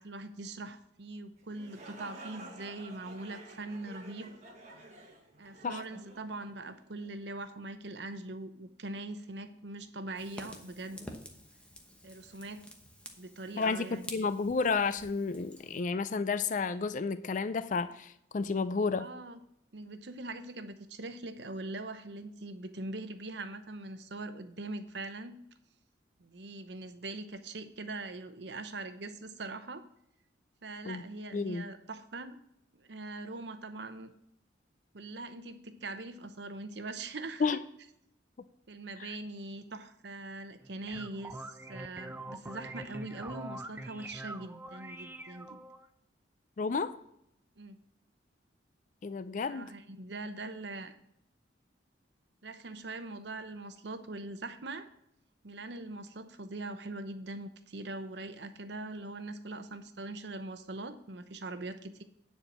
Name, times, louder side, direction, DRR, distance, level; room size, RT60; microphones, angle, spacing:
voice 1, 0.0-4.3 5.4-11.1 12.0-12.7 13.2-14.2 19.0-19.4 19.7-25.4 26.2-29.8 30.6-32.4 32.7-34.1 34.9-37.6 38.7-45.6 47.6-47.8 49.5-50.9 52.4-54.9 55.4-62.0, right 2 dB, 65° right, 10 dB, 0.8 m, -42 dB
sound 1, 1.4-7.1, right 2 dB, 40° right, 1.5 m, -51 dB
Fire, 10.2-15.8, left 1 dB, 5° left, 1.0 m, -50 dB
voice 2, 13.6-19.1 30.8-31.0 31.3-31.7 37.4-37.6 39.0-39.2 46.6-47.0 49.0-49.7, left 4 dB, 45° left, 12 dB, 0.4 m, -31 dB
sound 2, 40.6-45.9, right 2 dB, 10° right, 0.5 m, -44 dB
9.7 x 4.6 x 7.3 m, 0.77 s
head